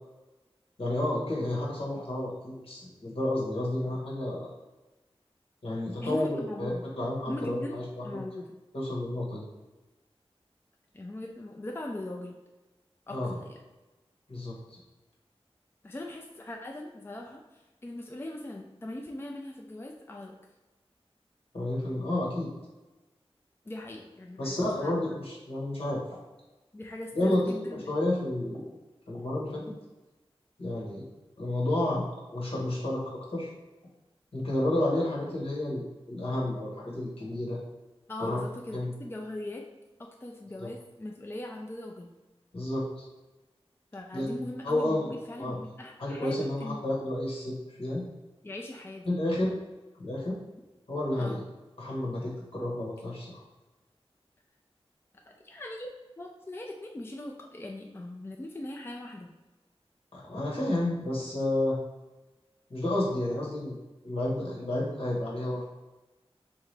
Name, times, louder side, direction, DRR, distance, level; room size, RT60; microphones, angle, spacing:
voice 1, 0.8-4.5 5.6-8.0 8.7-9.4 13.1-13.3 14.3-14.8 21.5-22.5 24.4-26.0 27.1-27.6 27.9-28.7 29.1-29.6 30.6-31.0 31.4-33.5 34.3-37.6 38.2-38.4 38.7-38.9 40.6-40.7 42.5-43.0 44.1-44.4 44.6-45.1 45.4-45.5 46.0-48.0 49.1-49.5 50.0-50.4 50.9-51.4 51.8-53.4 60.1-61.8 62.7-63.8 64.0-65.6, left 1 dB, 70° left, -5 dB, 1.3 m, -31 dB
voice 2, 6.0-6.8 7.3-8.6 10.9-12.4 13.1-13.6 15.8-20.4 23.6-25.2 26.7-27.9 38.1-39.7 40.0-42.1 43.9-46.8 48.4-49.1 51.2-51.4 55.3-59.3, left 1 dB, 20° left, 1 dB, 0.4 m, -40 dB
3.6 x 2.9 x 3.3 m, 1.1 s
wide cardioid pair, 65°, 10 cm